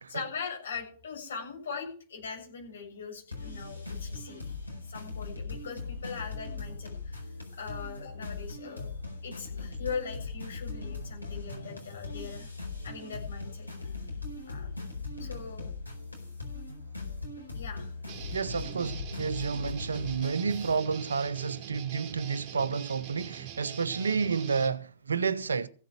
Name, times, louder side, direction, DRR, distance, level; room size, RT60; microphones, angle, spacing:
voice 1, 0.1-4.6 4.9-7.3 7.6-8.9 9.2-12.5 12.8-13.9 14.5-14.7 15.2-15.7 17.5-17.9, left 5 dB, 65° left, 7.5 m, -40 dB
sound 1, 3.3-20.8, left 3 dB, 90° left, 4.5 m, -39 dB
Guitar, 18.1-24.8, right 10 dB, 30° right, 3.0 m, -44 dB
voice 2, 18.3-25.7, right 5 dB, 75° right, 0.8 m, -30 dB
15.5 x 7.9 x 6.2 m
figure-of-eight pair, 100°, 0 cm